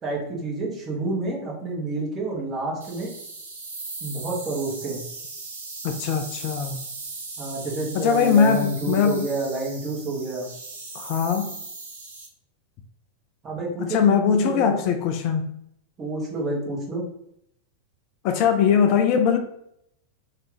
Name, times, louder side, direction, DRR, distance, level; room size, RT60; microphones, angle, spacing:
voice 1, 0.0-3.1 4.0-5.0 7.4-10.5 13.4-14.6 16.0-17.0, right 2 dB, 25° right, -3 dB, 1.3 m, -29 dB
sound 1, 2.8-12.3, right 3 dB, 70° right, 0.8 m, -38 dB
voice 2, 5.8-6.8 7.9-9.3 10.9-11.5 13.8-15.5 18.2-19.4, left 7 dB, 45° left, 7 dB, 0.3 m, -21 dB
3.1 x 2.5 x 3.3 m, 0.75 s
figure-of-eight pair, 90°, 0 cm